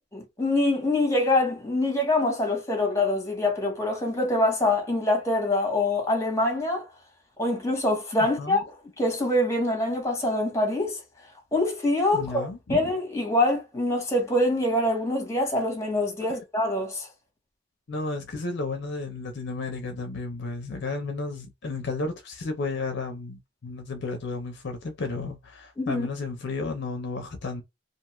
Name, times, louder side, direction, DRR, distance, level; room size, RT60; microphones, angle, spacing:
voice 1, 0.1-6.9 7.4-8.6 9.0-11.0 11.5-17.1 25.8-26.1, left 1 dB, 15° left, 1.0 m, -25 dB
voice 2, 8.2-8.6 12.1-12.9 17.9-27.6, left 3 dB, 60° left, 0.6 m, -33 dB
2.6 x 2.3 x 2.9 m
head